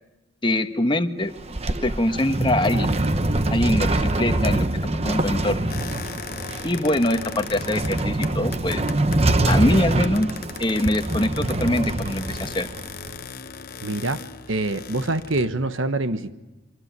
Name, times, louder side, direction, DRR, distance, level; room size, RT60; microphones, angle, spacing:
voice 1, 0.4-1.3 1.8-2.9 3.5-4.7 5.0-5.7 6.6-8.8 9.5-10.3 10.6-12.7, left 1 dB, 25° left, 1.3 m, -23 dB
sound 1, 1.2-13.1, right 2 dB, 30° right, 1.0 m, -24 dB
sound 2, 5.7-9.7 10.0-15.7, left 5 dB, 45° left, 0.9 m, -38 dB
voice 2, 13.8-16.3, right 2 dB, 80° right, 1.3 m, -25 dB
26.0 x 25.5 x 8.2 m
head